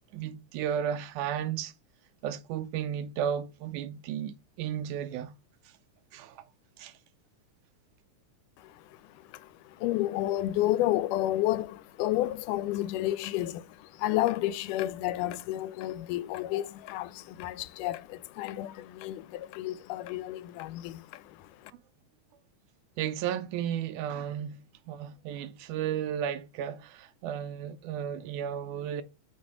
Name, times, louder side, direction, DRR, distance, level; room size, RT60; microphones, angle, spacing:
voice 1, 0.1-1.7 2.2-5.3 6.1-6.4 6.8-6.9 23.0-29.0, right 9 dB, 90° right, 2.1 m, -34 dB
voice 2, 9.3-21.5, left 15 dB, 90° left, 2.1 m, -31 dB
5.9 x 4.2 x 4.8 m
omnidirectional pair, 3.6 m